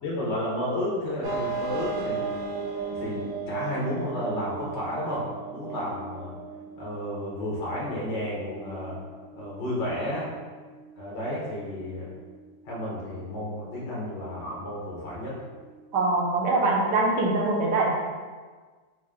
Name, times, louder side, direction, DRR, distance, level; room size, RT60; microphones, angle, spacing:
voice 1, 0.0-2.4 2.9-6.3 6.7-9.0 9.3-10.3 11.0-12.1 12.6-15.4, left 1 dB, 55° left, -5 dB, 0.9 m, -32 dB
sound 1, 1.2-16.7, right 4 dB, 70° right, 0.9 m, -38 dB
voice 2, 15.9-17.9, right 2 dB, 85° right, -1 dB, 1.2 m, -23 dB
3.5 x 2.5 x 3.3 m, 1.4 s
omnidirectional pair, 1.8 m